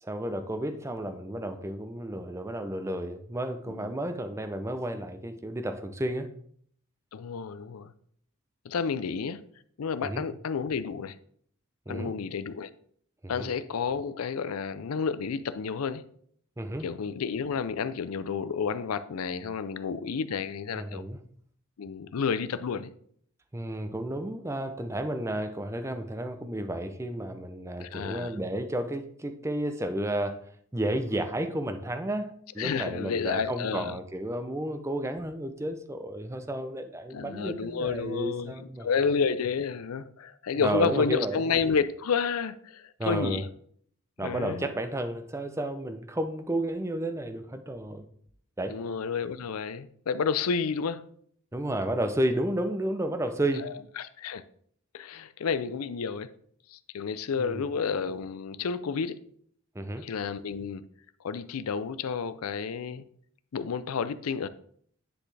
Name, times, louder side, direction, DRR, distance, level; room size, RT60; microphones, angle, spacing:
voice 1, 0.0-6.3 10.0-10.2 11.9-12.1 13.2-13.5 16.6-16.9 20.7-21.2 23.5-30.4 30.7-38.9 40.6-41.4 43.0-43.4 44.2-48.1 48.6-48.8 51.5-53.7 57.4-57.6 59.7-60.1, right 1 dB, 15° right, 0.5 m, -32 dB
voice 2, 7.1-7.9 8.6-9.4 9.8-11.2 11.9-12.7 13.3-16.0 16.8-21.0 21.8-22.9 27.8-28.3 32.6-34.0 37.1-43.5 44.2-44.7 48.7-51.0 53.6-54.4 54.9-56.3 56.7-59.2 60.0-60.8 61.2-63.0 63.5-64.5, left 5 dB, 90° left, 0.5 m, -30 dB
9.8 x 4.0 x 3.3 m
head